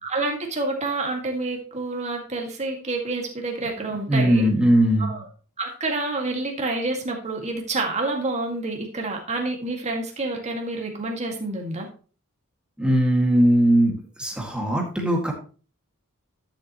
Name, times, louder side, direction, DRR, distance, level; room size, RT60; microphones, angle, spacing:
voice 1, 0.0-4.5 5.0-5.2 5.6-11.9, right 2 dB, 30° right, 1 dB, 2.0 m, -28 dB
voice 2, 4.1-5.1 12.8-15.3, right 1 dB, 5° right, 0 dB, 2.0 m, -19 dB
11.5 x 7.4 x 3.1 m, 0.38 s
head